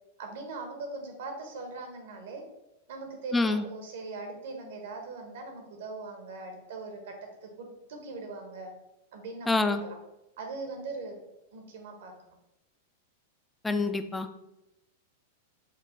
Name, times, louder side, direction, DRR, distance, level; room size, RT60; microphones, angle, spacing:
voice 1, 0.2-2.4 2.9-7.1 7.4-8.7 9.1-10.0 10.4-11.1 11.5-12.3, right 3 dB, 70° right, 3 dB, 1.1 m, -41 dB
voice 2, 3.3-3.6 9.5-9.8 13.6-14.3, left 3 dB, 10° left, 8 dB, 0.4 m, -26 dB
5.0 x 2.2 x 4.3 m, 0.91 s
hypercardioid pair, 120°, 0 cm